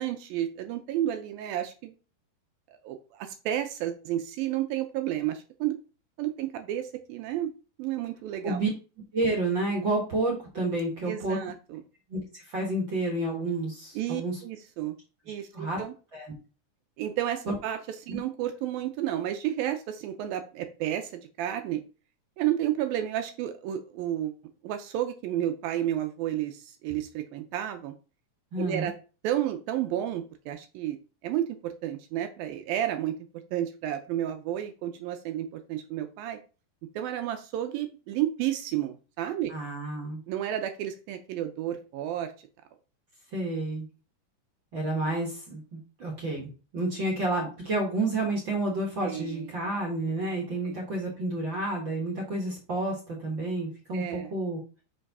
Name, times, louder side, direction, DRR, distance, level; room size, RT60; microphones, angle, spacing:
voice 1, 0.0-1.9 2.7-5.8 6.2-7.5 7.8-8.6 11.0-11.8 14.0-14.9 15.3-15.9 17.0-21.8 22.4-24.4 24.6-27.9 28.6-28.9 29.2-31.0 31.2-33.2 33.5-36.4 37.0-39.5 40.3-42.3 49.0-49.5 50.7-50.8 53.9-54.3, right 12 dB, 75° right, 8 dB, 2.3 m, -31 dB
voice 2, 9.1-11.4 12.1-14.4 15.5-15.8 16.1-16.3 17.5-17.6 18.1-18.2 28.5-28.9 39.5-40.2 43.3-43.9 44.7-54.6, right 2 dB, 40° right, 0 dB, 1.9 m, -30 dB
5.7 x 5.6 x 5.4 m, 0.34 s
omnidirectional pair, 4.5 m